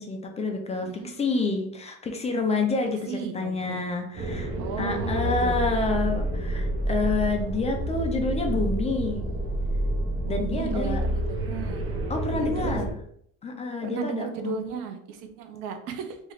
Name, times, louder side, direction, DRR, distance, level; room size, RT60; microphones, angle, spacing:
voice 1, 0.0-9.2 10.3-11.0 12.1-13.0 13.4-14.5, left 3 dB, 20° left, 3 dB, 0.4 m, -28 dB
voice 2, 0.8-1.1 3.1-3.8 4.6-5.6 10.3-12.0 12.3-12.8 13.8-16.2, right 6 dB, 85° right, 6 dB, 0.7 m, -35 dB
sound 1, 4.1-12.9, right 1 dB, 40° right, 0.9 m, -29 dB
3.1 x 2.5 x 3.9 m, 0.66 s
cardioid pair, 145°, 33 cm